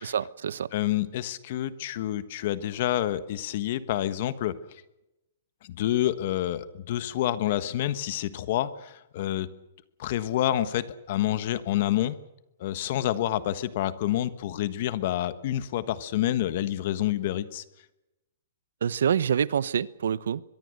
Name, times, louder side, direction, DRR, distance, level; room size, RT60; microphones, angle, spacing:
voice 1, 0.0-0.7 18.8-20.4, right 8 dB, 80° right, 18 dB, 0.9 m, -26 dB
voice 2, 0.7-4.5 5.6-9.5 10.0-12.2 12.6-17.6, left 12 dB, 40° left, 13 dB, 1.3 m, -28 dB
23.5 x 22.0 x 6.7 m, 0.92 s
hypercardioid pair, 175°, 0 cm